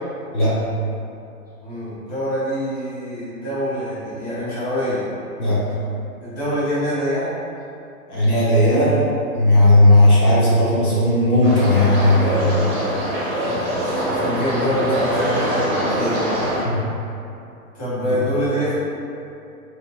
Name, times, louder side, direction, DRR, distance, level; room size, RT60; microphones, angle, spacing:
voice 1, 1.6-5.0 6.2-7.3 13.2-16.3 17.7-18.7, equal, 20° left, -13 dB, 1.3 m, -25 dB
voice 2, 8.1-9.0 9.3-12.5 16.6-16.8 18.1-18.2, left 1 dB, 90° left, -8 dB, 1.0 m, -15 dB
sound 1, 11.4-16.6, right 1 dB, 20° right, 0.4 m, -24 dB
2.9 x 2.6 x 2.3 m, 2.6 s
hypercardioid pair, 120°, 43 cm